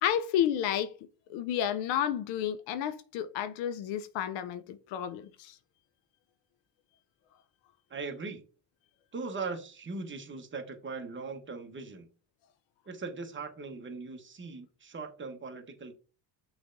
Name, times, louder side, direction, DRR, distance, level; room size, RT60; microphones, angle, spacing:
voice 1, 0.0-0.9 1.3-5.6, left 10 dB, 80° left, 0.6 m, -31 dB
voice 2, 7.9-8.4 9.1-12.1 12.8-15.9, right 4 dB, 25° right, 1.0 m, -39 dB
6.1 x 3.3 x 2.6 m
cardioid pair, 90°, 44 cm